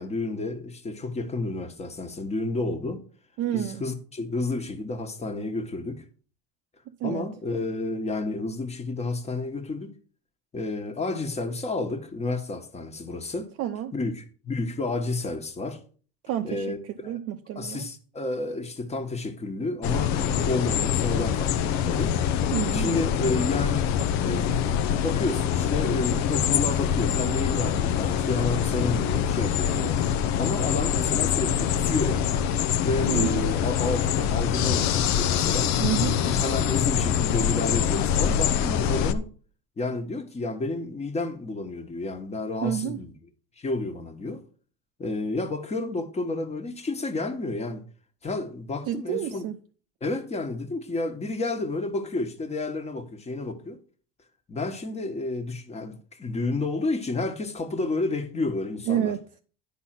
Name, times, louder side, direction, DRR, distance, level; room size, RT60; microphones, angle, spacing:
voice 1, 0.0-3.0 3.5-6.0 7.0-9.9 10.5-13.5 13.9-15.8 16.4-17.2 17.5-22.1 22.7-23.9 24.2-30.0 30.4-32.5 32.8-35.7 36.2-39.3 39.8-43.1 43.6-44.4 45.0-47.8 48.2-49.4 50.0-53.8 54.5-59.1, left 2 dB, 20° left, 1.4 m, -30 dB
voice 2, 3.4-3.8 7.0-7.3 13.6-13.9 16.3-16.7 17.0-17.9 22.5-23.0 33.1-33.4 35.8-36.2 42.6-43.0 48.9-49.6 58.9-59.2, right 11 dB, 55° right, 0.7 m, -29 dB
sound 1, 19.8-39.1, left 9 dB, 65° left, 0.8 m, -24 dB
10.5 x 4.0 x 5.9 m
supercardioid pair, 105°, 30 cm